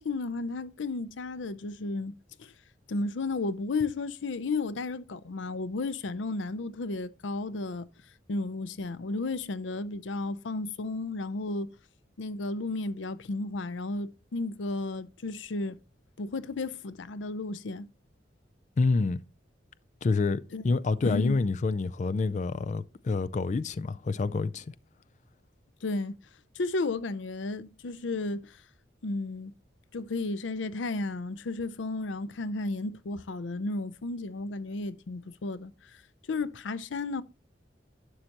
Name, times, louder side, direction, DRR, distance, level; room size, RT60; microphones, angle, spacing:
voice 1, 0.0-2.1 2.4-2.5 2.9-7.9 8.3-11.7 12.2-15.8 16.2-17.9 20.5-20.6 21.0-21.4 25.8-26.2 26.6-28.6 29.0-29.5 29.9-35.7 36.3-37.2, left 3 dB, 90° left, 0.6 m, -33 dB
voice 2, 18.8-19.2 20.0-24.7, left 3 dB, 40° left, 0.3 m, -27 dB
11.5 x 6.5 x 2.9 m
head